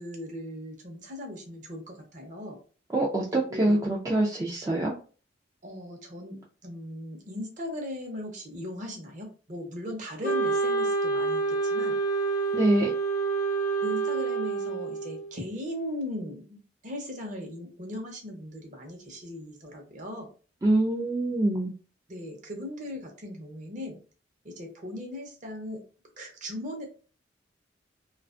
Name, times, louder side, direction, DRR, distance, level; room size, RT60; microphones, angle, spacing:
voice 1, 0.0-2.6 3.3-3.8 5.6-12.0 13.8-20.3 22.1-24.0 24.4-25.8 26.2-26.9, left 1 dB, 45° right, 2 dB, 0.7 m, -38 dB
voice 2, 2.9-4.9 12.5-12.9 20.6-21.7, right 1 dB, 20° right, -3 dB, 0.3 m, -25 dB
Wind instrument woodwind instrument, 10.2-15.3, right 4 dB, 45° left, 0.5 m, -27 dB
2.4 x 2.3 x 2.4 m, 0.38 s
head